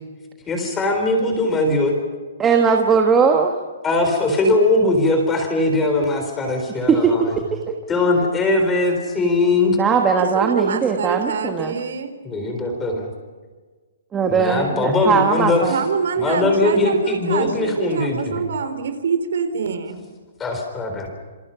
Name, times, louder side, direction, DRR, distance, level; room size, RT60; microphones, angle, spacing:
voice 1, 0.5-1.9 3.8-7.4 7.9-9.8 12.2-13.1 14.3-15.6 16.2-18.4 20.4-21.1, left 2 dB, 10° left, 4 dB, 3.9 m, -20 dB
voice 2, 2.4-3.5 6.9-7.1 7.5-7.7 9.8-11.8 14.1-15.8, right 5 dB, 10° right, 3 dB, 1.2 m, -19 dB
voice 3, 10.2-12.1 15.7-20.0, right 6 dB, 65° right, 9 dB, 3.8 m, -25 dB
28.0 x 26.5 x 5.8 m, 1.4 s
hypercardioid pair, 175°, 0 cm